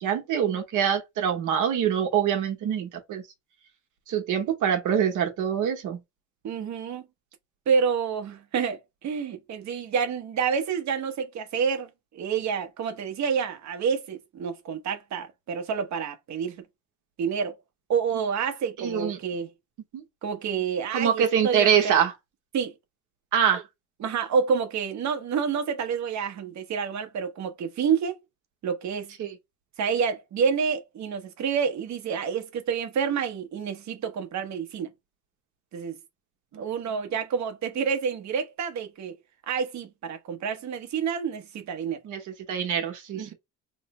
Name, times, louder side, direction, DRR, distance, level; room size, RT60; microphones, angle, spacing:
voice 1, 0.0-3.2 4.1-6.0 18.8-19.2 19.9-20.0 20.9-22.1 23.3-23.6 29.2-29.3 36.5-36.7 42.0-43.3, right 8 dB, 85° right, 1.1 m, -25 dB
voice 2, 6.4-7.0 7.7-16.6 17.2-17.6 17.9-19.5 20.2-21.9 22.5-22.7 24.0-28.2 28.6-29.1 29.8-34.9 35.7-36.0 36.5-39.1 39.5-42.0 43.1-43.3, right 6 dB, 65° right, 1.0 m, -28 dB
3.1 x 2.0 x 4.1 m
cardioid pair, 90°, 30 cm